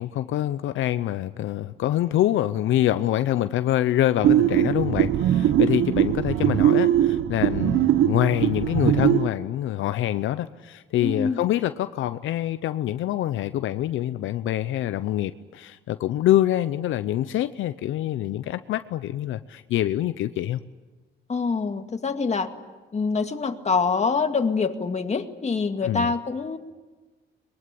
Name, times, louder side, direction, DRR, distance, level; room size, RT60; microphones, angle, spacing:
voice 1, 0.0-20.6 25.8-26.1, left 13 dB, 80° left, 0.7 m, -25 dB
sound 1, 4.2-9.3, right 11 dB, 85° right, 0.9 m, -21 dB
voice 2, 11.0-11.4 21.3-22.5 22.9-26.6, left 4 dB, 35° left, 2.1 m, -25 dB
23.0 x 22.0 x 9.8 m
cardioid pair, 90°, 20 cm